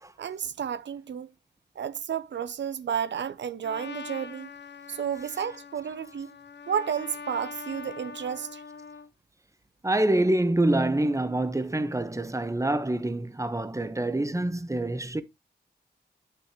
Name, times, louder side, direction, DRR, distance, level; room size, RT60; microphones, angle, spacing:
voice 1, 0.2-1.3 1.8-4.5 4.9-6.3 6.7-8.6, right 8 dB, 90° right, 0.6 m, -32 dB
Trumpet, 3.6-9.1, left 5 dB, 80° left, 1.0 m, -43 dB
voice 2, 9.8-15.2, right 1 dB, 15° right, 1.1 m, -26 dB
9.4 x 6.8 x 3.0 m
cardioid pair, 55°, 18 cm